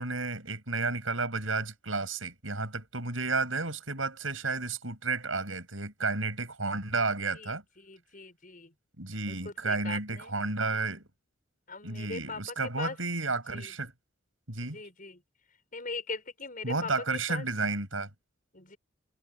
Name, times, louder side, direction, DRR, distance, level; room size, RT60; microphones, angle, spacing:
voice 1, 0.0-7.6 9.0-11.1 11.8-13.9 14.5-14.8 16.6-18.1, right 3 dB, 90° right, 7.8 m, -32 dB
voice 2, 7.3-8.7 9.3-10.3 11.7-13.0 13.5-13.7 14.6-15.2 15.7-17.5 18.5-18.8, left 3 dB, 45° left, 6.8 m, -41 dB
head